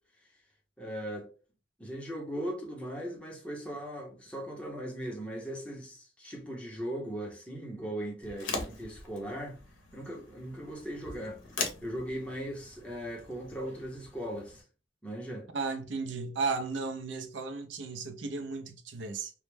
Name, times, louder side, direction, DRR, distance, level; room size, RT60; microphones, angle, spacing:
voice 1, 0.8-1.3 1.8-9.6 9.9-11.4 11.8-14.6 15.0-15.5, equal, 5° left, 0.6 m, -38 dB
sound 1, 8.2-14.6, left 4 dB, 85° left, 0.6 m, -42 dB
voice 2, 15.5-19.3, right 4 dB, 75° right, 0.4 m, -34 dB
2.1 x 2.0 x 3.1 m
head